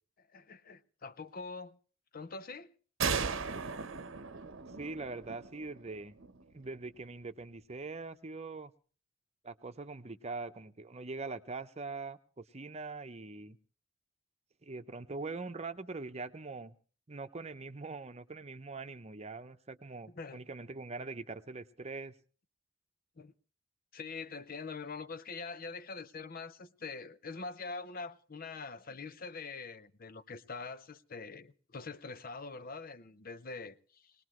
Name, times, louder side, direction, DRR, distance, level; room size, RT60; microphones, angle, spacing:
voice 1, 0.3-1.8 2.1-2.7 20.1-20.4 23.2-23.3 23.9-34.1, left 4 dB, 45° left, 0.7 m, -44 dB
sound 1, 3.0-6.5, right 5 dB, 80° right, 0.9 m, -37 dB
voice 2, 4.8-6.2 6.5-8.7 9.4-13.6 14.6-16.8 17.1-22.1, right 3 dB, 35° right, 0.8 m, -42 dB
21.0 x 19.5 x 3.1 m
head